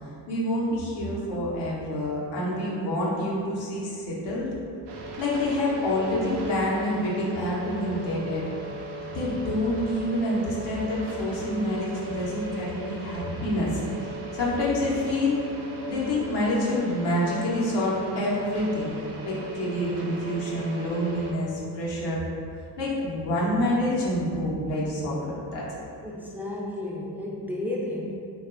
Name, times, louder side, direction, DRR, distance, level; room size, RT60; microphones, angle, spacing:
voice 1, 0.3-4.5 5.2-8.4 9.1-15.4 15.9-18.9 19.2-22.2 22.8-25.6, left 1 dB, 80° left, -6 dB, 0.8 m, -27 dB
sound 1, 4.9-21.3, right 1 dB, 75° right, 0.5 m, -38 dB
voice 2, 26.0-28.1, left 1 dB, 5° right, -4 dB, 0.4 m, -32 dB
2.8 x 2.2 x 2.4 m, 2.4 s
supercardioid pair, 60°, 42 cm